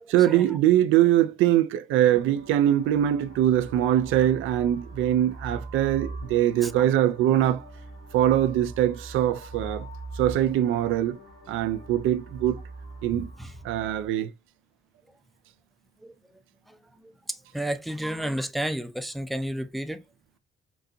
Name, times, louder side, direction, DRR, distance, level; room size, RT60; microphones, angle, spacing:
voice 1, 0.1-7.7 8.1-9.9 10.2-11.2 11.5-12.6 13.0-13.3 13.6-14.3, right 12 dB, 85° right, 0.4 m, -22 dB
sound 1, 2.1-14.1, right 2 dB, 90° left, 2.1 m, -42 dB
voice 2, 17.3-20.0, right 1 dB, ahead, 0.4 m, -31 dB
4.0 x 2.3 x 2.5 m
cardioid pair, 90°, 20 cm